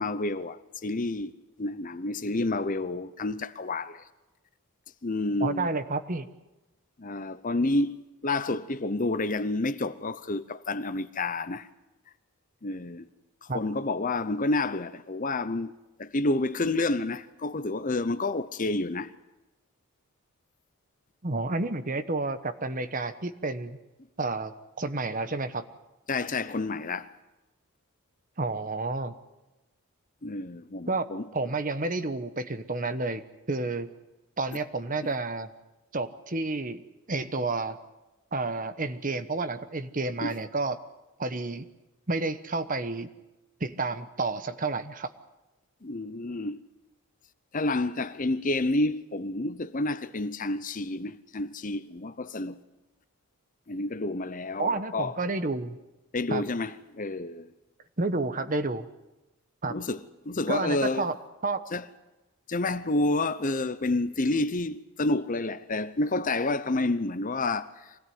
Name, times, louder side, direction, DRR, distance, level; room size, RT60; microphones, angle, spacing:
voice 1, 0.0-1.3 1.6-4.0 5.0-5.7 7.0-8.0 8.2-11.7 12.6-13.1 13.4-15.7 16.0-19.1 26.1-27.1 30.2-31.3 40.2-40.3 45.8-46.6 47.5-52.6 53.7-55.1 56.1-57.5 59.7-61.1 61.7-61.8 62.5-68.0, left 2 dB, 35° left, 0.8 m, -29 dB
voice 2, 5.4-6.3 13.5-13.6 21.2-23.8 24.2-25.6 28.4-29.1 30.9-31.1 31.3-33.2 33.5-33.9 34.4-35.5 35.9-36.8 37.1-37.8 38.3-40.8 41.2-41.7 42.1-43.1 43.6-45.1 54.6-55.8 56.3-56.4 58.0-58.9 59.6-59.8 60.5-61.2 61.4-61.6, right 3 dB, 35° right, 1.1 m, -30 dB
24.5 x 17.0 x 9.5 m
head